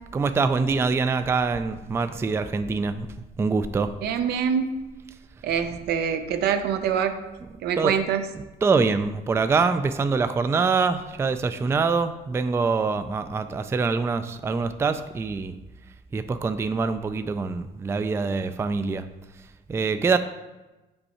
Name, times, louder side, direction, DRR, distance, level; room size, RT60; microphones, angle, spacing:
voice 1, 0.1-3.1 3.4-3.9 7.8-7.9 8.6-15.5 16.1-19.1 19.7-20.2, right 4 dB, 15° right, 10 dB, 0.3 m, -24 dB
voice 2, 4.0-4.8 5.4-7.2 7.6-8.2, right 7 dB, 75° right, 9 dB, 0.7 m, -25 dB
5.5 x 5.4 x 4.2 m, 1.1 s
cardioid pair, 110°, 17 cm